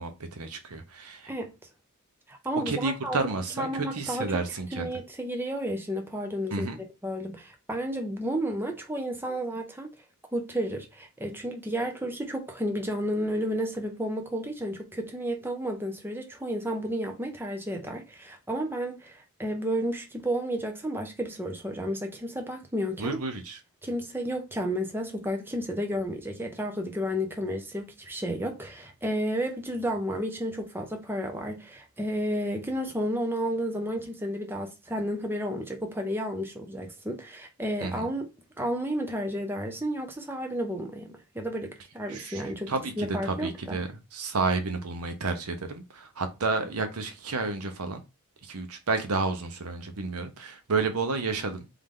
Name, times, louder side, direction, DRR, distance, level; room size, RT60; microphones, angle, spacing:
voice 1, 0.0-1.3 2.7-4.9 6.5-6.8 23.0-23.6 37.8-38.1 42.1-48.0 48.4-51.7, right 3 dB, 85° right, 0.8 m, -31 dB
voice 2, 2.3-3.3 3.6-4.4 4.7-6.7 7.0-9.9 10.3-23.2 23.8-38.3 38.6-43.8, equal, 10° right, 0.6 m, -32 dB
3.7 x 3.3 x 3.7 m
head